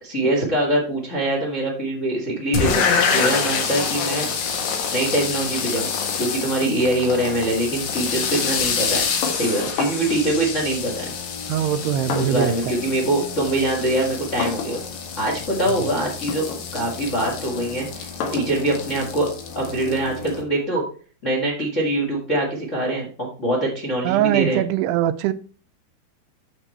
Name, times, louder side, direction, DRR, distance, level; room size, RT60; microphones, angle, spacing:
voice 1, 0.0-2.8 3.1-4.2 4.9-9.0 9.3-11.0 12.1-14.8 15.2-16.4 16.7-19.3 19.5-20.8 21.2-24.6, right 1 dB, 35° left, 1.1 m, -23 dB
sound 1, 2.5-20.4, left 6 dB, 80° left, 3.6 m, -27 dB
sound 2, 9.2-10.2 11.1-12.7 13.0-20.3, left 5 dB, 65° left, 3.1 m, -34 dB
voice 2, 11.5-12.8 24.0-25.3, right 11 dB, 85° right, 2.6 m, -22 dB
8.1 x 6.7 x 4.4 m
omnidirectional pair, 4.7 m